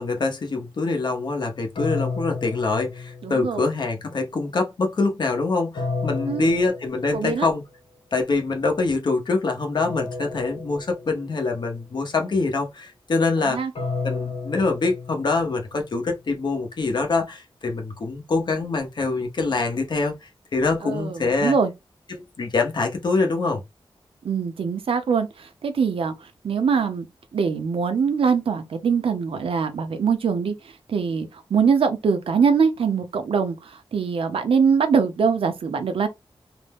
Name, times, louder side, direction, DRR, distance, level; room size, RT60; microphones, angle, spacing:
voice 1, 0.0-7.6 8.1-13.6 14.0-21.6 22.1-23.6, left 3 dB, 55° left, 0.8 m, -24 dB
sound 1, 1.8-3.8 5.8-7.6 9.8-11.6 13.8-16.0, left 4 dB, 85° left, 1.2 m, -32 dB
voice 2, 3.2-3.6 6.3-6.5 7.1-7.5 13.4-13.7 20.8-21.7 24.2-27.1 27.3-30.5 30.9-36.1, right 6 dB, 85° right, 0.6 m, -23 dB
2.6 x 2.1 x 3.4 m
wide cardioid pair, 160°, 9 cm